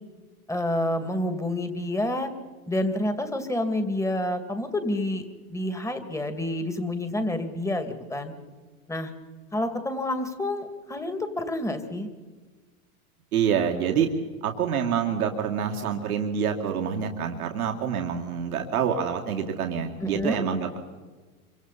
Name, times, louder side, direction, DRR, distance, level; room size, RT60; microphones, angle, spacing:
voice 1, 0.5-2.3 2.7-8.3 8.9-9.1 9.5-12.1 20.0-20.4, left 1 dB, 5° left, 7 dB, 2.4 m, -28 dB
voice 2, 13.3-14.1 14.4-20.8, right 7 dB, 80° right, 2 dB, 2.2 m, -26 dB
26.5 x 25.0 x 4.2 m, 1.4 s
hypercardioid pair, 110°, 44 cm